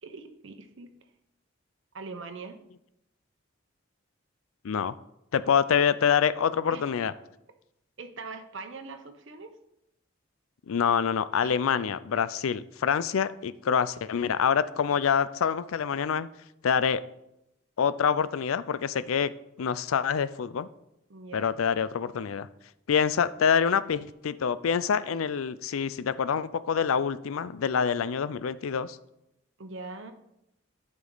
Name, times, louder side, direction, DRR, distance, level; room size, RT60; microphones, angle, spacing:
voice 1, 0.0-1.1 1.9-2.6 6.7-6.9 8.0-9.5 11.4-11.6 21.1-21.5 29.6-30.1, right 3 dB, 65° right, 7 dB, 0.9 m, -42 dB
voice 2, 4.6-4.9 5.3-7.1 10.7-16.3 16.6-17.0 17.8-19.3 19.6-20.7 21.3-22.5 22.9-29.0, left 7 dB, 80° left, 16 dB, 0.4 m, -26 dB
11.0 x 5.2 x 3.9 m, 0.83 s
head